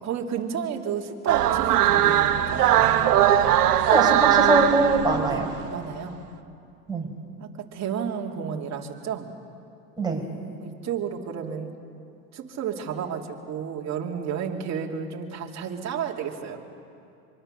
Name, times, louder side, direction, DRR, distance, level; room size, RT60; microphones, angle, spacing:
voice 1, 0.0-2.9 5.3-5.4 5.7-6.2 7.4-9.3 10.6-11.7 12.3-16.6, right 7 dB, 35° right, 1 dB, 2.9 m, -32 dB
sound 1, 1.3-5.6, right 11 dB, 85° right, 1.2 m, -20 dB
voice 2, 3.9-5.5 6.9-7.1 10.0-10.2, right 2 dB, 10° right, -1 dB, 5.3 m, -22 dB
24.5 x 24.0 x 6.8 m, 2.6 s
hypercardioid pair, 100°, 45 cm